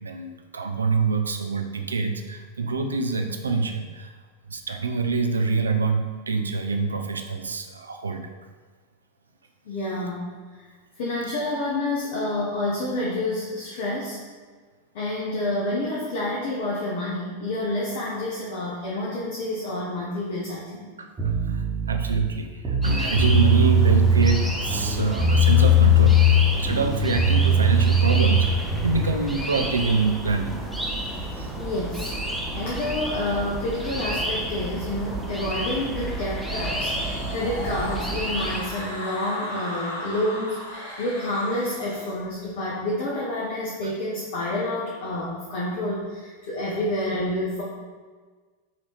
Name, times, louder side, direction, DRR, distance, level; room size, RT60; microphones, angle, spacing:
voice 1, 0.0-4.1 4.5-8.2 21.0-21.1 21.5-28.5 28.8-30.5 31.4-31.5 43.8-43.9, right 4 dB, 75° right, 5 dB, 0.3 m, -25 dB
voice 2, 9.7-10.4 11.0-14.2 14.9-20.9 31.6-32.1 32.5-47.6, left 1 dB, 55° left, -5 dB, 0.7 m, -28 dB
sound 1, 21.2-22.2 22.6-24.4 24.7-26.4 26.7-29.1, left 1 dB, 20° right, 1.0 m, -19 dB
sound 2, 22.8-38.6, right 1 dB, ahead, 0.6 m, -31 dB
sound 3, 36.5-42.1, left 1 dB, 75° left, 1.4 m, -36 dB
4.9 x 2.7 x 3.0 m, 1.5 s
figure-of-eight pair, 90°, 0 cm